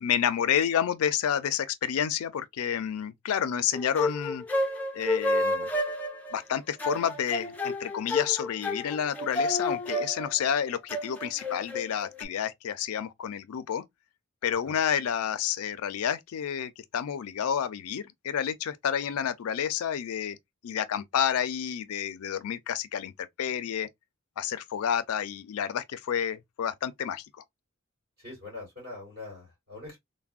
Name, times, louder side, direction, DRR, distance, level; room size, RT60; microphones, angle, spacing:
voice 1, 0.0-4.4 4.9-5.7 6.3-13.8 14.4-20.4 20.6-23.9 24.4-27.2, left 8 dB, 90° left, 0.4 m, -30 dB
sound 1, 3.7-12.2, left 1 dB, 5° left, 0.3 m, -30 dB
voice 2, 28.2-30.0, left 2 dB, 50° right, 2.3 m, -43 dB
3.3 x 2.1 x 2.3 m
head